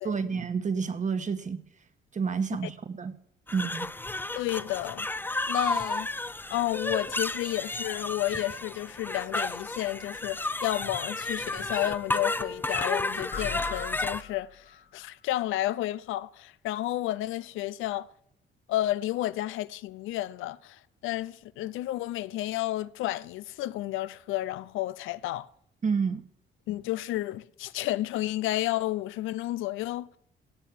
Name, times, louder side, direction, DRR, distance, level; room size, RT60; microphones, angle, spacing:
voice 1, 0.0-1.6 2.1-3.1 3.5-3.9 25.8-26.2, right 5 dB, 40° right, 1.4 m, -29 dB
sound 1, 3.5-14.2, left 2 dB, 10° left, 0.5 m, -32 dB
voice 2, 4.3-5.1 5.5-6.1 6.5-18.1 18.7-25.5 26.7-30.2, left 15 dB, 90° left, 0.5 m, -31 dB
sound 2, 13.3-14.9, left 7 dB, 75° left, 1.9 m, -40 dB
16.5 x 8.0 x 7.5 m
cardioid pair, 90°, 20 cm